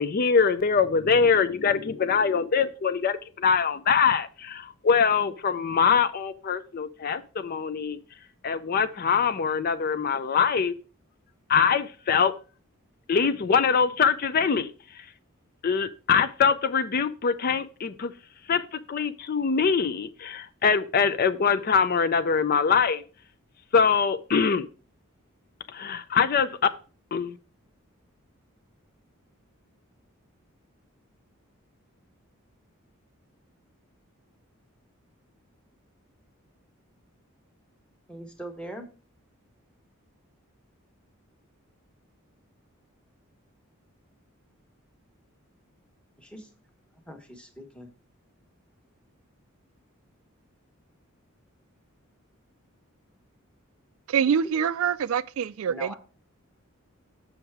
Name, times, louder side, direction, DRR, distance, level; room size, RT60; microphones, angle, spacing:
voice 1, 0.0-8.0 8.4-10.8 11.5-12.3 13.1-15.1 15.6-18.1 18.5-23.0 23.7-24.7 25.7-26.5 27.1-27.4, left 6 dB, 45° left, 0.4 m, -23 dB
voice 2, 38.1-38.8 46.2-46.5 47.1-47.9 55.6-55.9, equal, 5° left, 1.1 m, -41 dB
voice 3, 54.1-55.9, right 7 dB, 75° right, 0.3 m, -25 dB
7.2 x 5.8 x 4.6 m
head